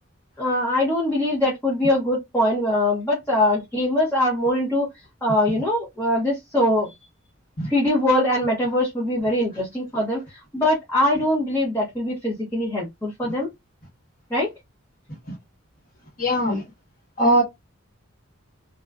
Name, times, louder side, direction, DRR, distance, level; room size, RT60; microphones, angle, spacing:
voice 1, 0.4-4.9 5.2-6.9 7.6-13.5 14.3-14.5, left 1 dB, 10° left, 0.7 m, -22 dB
voice 2, 16.2-16.6 17.2-17.4, right 1 dB, 40° left, 1.1 m, -20 dB
2.5 x 2.2 x 2.2 m
head